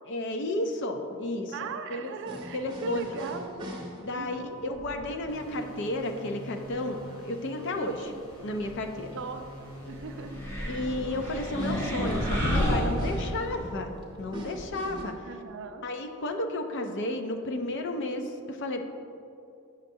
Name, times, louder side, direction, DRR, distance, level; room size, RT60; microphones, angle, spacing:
voice 1, 0.1-2.1 2.5-3.1 4.0-8.1 8.4-9.1 10.7-15.1 15.8-18.8, left 1 dB, 55° left, 5 dB, 0.5 m, -32 dB
voice 2, 1.5-3.5 4.1-4.6 8.0-8.2 9.1-10.4 15.2-15.9, right 5 dB, 55° right, 7 dB, 0.4 m, -39 dB
sound 1, 2.2-15.0, equal, 20° right, 0.8 m, -45 dB
sound 2, 5.3-13.0, left 1 dB, 85° left, 1.0 m, -46 dB
sound 3, 10.3-13.7, equal, 10° left, 0.8 m, -29 dB
6.6 x 6.4 x 2.7 m, 2.6 s
head